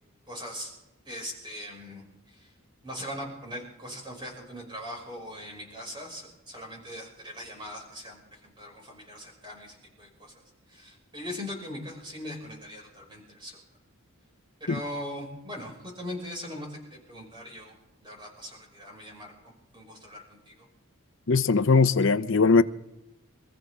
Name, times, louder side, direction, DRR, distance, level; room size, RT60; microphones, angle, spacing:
voice 1, 0.3-0.7 1.0-2.5 2.8-10.3 10.7-13.6 14.6-17.8 18.0-20.7, equal, 20° right, 5.8 m, -40 dB
voice 2, 21.3-22.6, left 4 dB, 55° left, 0.7 m, -20 dB
27.0 x 14.5 x 3.6 m
head